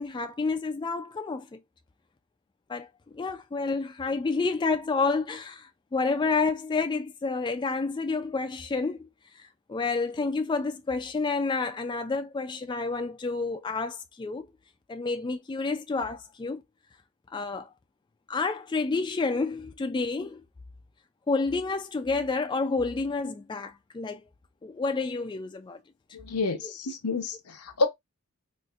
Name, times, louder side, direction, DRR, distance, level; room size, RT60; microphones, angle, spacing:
voice 1, 0.0-1.6 2.7-2.9 3.1-9.1 9.3-14.5 14.9-16.6 17.3-17.7 18.3-20.4 21.3-24.2 24.6-25.8 26.6-26.7, left 4 dB, 20° left, 0.3 m, -29 dB
voice 2, 26.1-27.9, left 3 dB, 90° left, 0.8 m, -29 dB
3.9 x 2.5 x 2.4 m
head